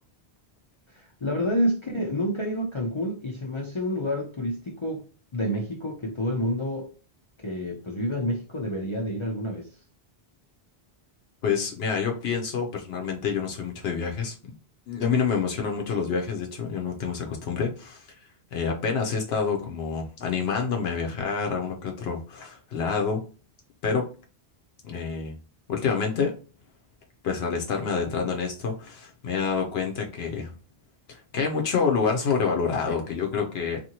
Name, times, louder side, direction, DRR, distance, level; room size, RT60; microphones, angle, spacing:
voice 1, 0.9-5.0 5.3-6.9 7.4-9.7, equal, 40° left, 0.4 m, -28 dB
voice 2, 11.4-14.3 14.9-18.1 18.5-23.2 23.8-24.1 24.8-25.4 25.7-26.3 27.2-30.5 31.1-33.8, left 5 dB, 75° left, 0.8 m, -27 dB
2.8 x 2.5 x 2.8 m
omnidirectional pair, 1.1 m